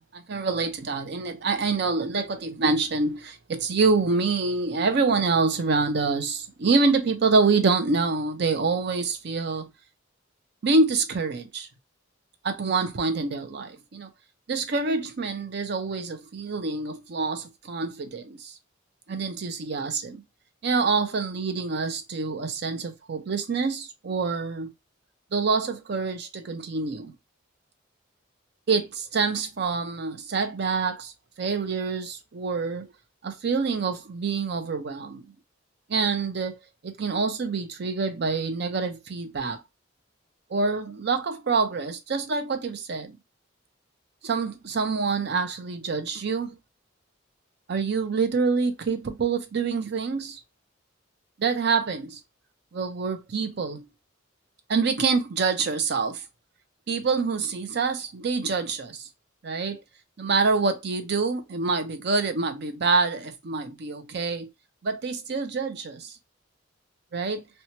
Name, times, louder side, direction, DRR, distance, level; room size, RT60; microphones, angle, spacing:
voice 1, 0.0-9.7 10.6-11.7 12.4-14.1 14.5-18.5 19.1-20.2 20.6-24.7 25.3-27.1 28.7-31.1 31.4-32.9 33.2-35.2 35.9-39.6 40.5-43.2 44.2-46.6 47.7-50.4 51.4-52.2 52.7-53.9 54.7-56.2 56.9-59.1 59.4-59.8 60.2-64.5 64.8-66.1 67.1-67.5, right 4 dB, 55° right, 0.5 m, -26 dB
2.8 x 2.2 x 2.8 m
head